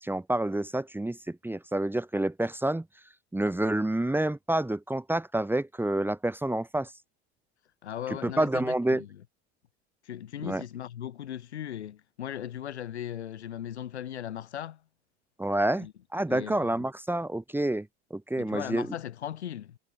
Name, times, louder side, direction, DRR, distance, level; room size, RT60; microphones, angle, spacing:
voice 1, 0.0-2.9 3.3-6.9 8.2-9.0 10.4-10.6 15.4-15.9 16.1-18.9, right 1 dB, 5° right, 2.1 m, -28 dB
voice 2, 7.8-9.2 10.0-14.8 15.7-15.9 16.3-16.7 18.4-19.8, left 10 dB, 80° left, 2.4 m, -38 dB
hypercardioid pair, 80°, 33 cm